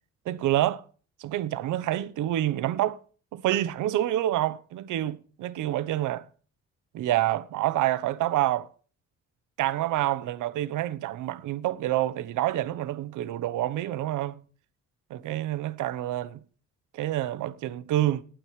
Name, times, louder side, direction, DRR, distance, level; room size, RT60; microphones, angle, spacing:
voice 1, 0.3-0.8 1.2-3.0 3.3-6.3 6.9-8.7 9.6-14.4 15.1-16.4 16.9-18.2, right 14 dB, 90° right, 1.0 m, -27 dB
19.0 x 9.0 x 3.3 m
cardioid pair, 90°, 30 cm